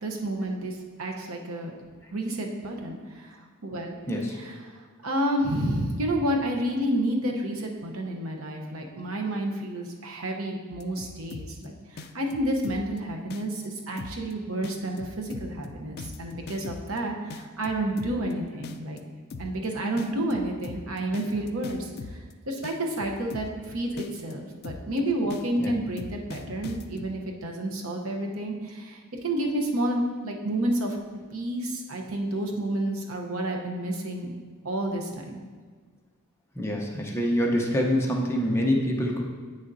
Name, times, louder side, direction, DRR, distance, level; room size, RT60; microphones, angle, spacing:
voice 1, 0.0-1.7 2.1-4.0 4.4-19.0 19.4-22.2 22.5-31.0 31.3-34.3 34.6-35.4, right 1 dB, 85° right, 2 dB, 0.9 m, -30 dB
sound 1, 10.7-11.6 12.0-13.0 13.3-13.7 14.0-14.3 14.6-17.0 17.3-18.3 18.6-19.0 19.3-19.6 20.0-22.3 22.6-23.6 24.0-24.3 24.6-25.0 25.3-27.1, left 4 dB, 50° left, 0.4 m, -40 dB
voice 2, 36.6-39.2, equal, 10° left, -1 dB, 0.8 m, -25 dB
8.5 x 6.4 x 2.7 m, 1.5 s
head